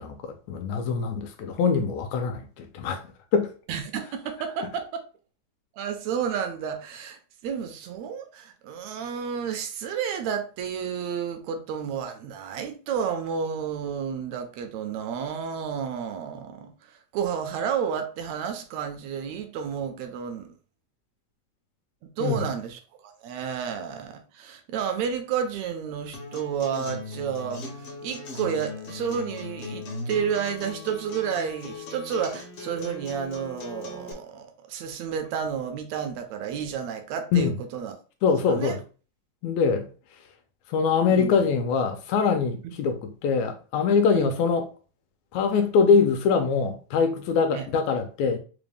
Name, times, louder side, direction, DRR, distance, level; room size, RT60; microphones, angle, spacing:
voice 1, 0.0-3.0 3.3-3.5 22.2-22.5 37.3-37.5 38.2-38.8 39.4-39.9 40.7-44.7 45.3-48.4, left 5 dB, 80° left, 1.8 m, -23 dB
voice 2, 3.7-5.0 5.8-16.7 17.1-20.5 22.2-38.0 38.5-38.8 41.1-41.4 44.1-44.3 47.5-47.7, right 7 dB, 80° right, 1.8 m, -31 dB
Acoustic guitar, 26.1-34.1, left 3 dB, 65° left, 1.4 m, -38 dB
4.9 x 2.1 x 3.4 m
omnidirectional pair, 3.3 m